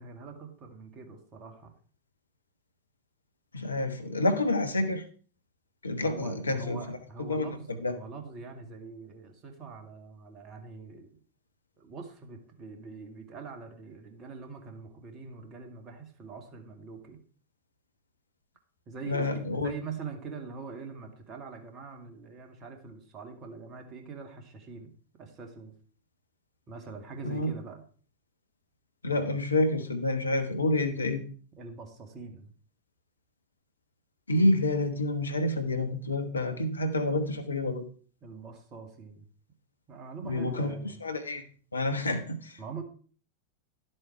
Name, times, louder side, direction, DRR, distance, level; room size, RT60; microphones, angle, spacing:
voice 1, 0.0-1.7 6.0-11.2 11.8-17.2 18.9-19.3 19.6-24.9 25.2-25.7 26.7-27.8 31.6-32.5 38.2-39.3 39.9-41.0 42.6-42.8, right 5 dB, 30° right, 5 dB, 2.1 m, -43 dB
voice 2, 3.5-5.0 5.8-7.9 19.1-19.7 27.2-27.5 29.0-31.2 34.3-37.9 40.2-40.7 41.0-41.4 41.7-42.6, left 2 dB, 75° left, 8 dB, 1.2 m, -28 dB
12.0 x 7.7 x 4.6 m, 0.42 s
figure-of-eight pair, 90°, 0 cm